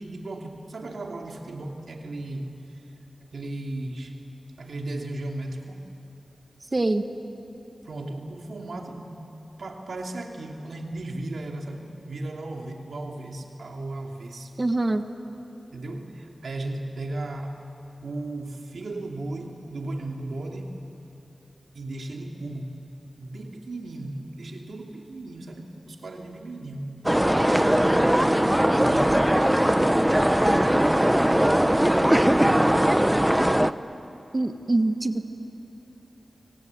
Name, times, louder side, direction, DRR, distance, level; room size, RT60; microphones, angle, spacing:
voice 1, 0.0-2.5 3.2-4.2 4.6-5.8 7.8-9.2 9.6-14.5 15.7-17.6 18.0-20.7 21.7-22.7 23.2-28.5 28.8-30.1 30.4-32.7, right 2 dB, 80° right, 2 dB, 2.8 m, -36 dB
voice 2, 6.7-7.1 14.6-15.0 34.3-35.2, right 2 dB, 35° right, 8 dB, 1.5 m, -24 dB
sound 1, 27.0-33.7, equal, 10° right, 0.8 m, -20 dB
25.0 x 24.0 x 9.5 m, 2.9 s
wide cardioid pair, 60°, 0 cm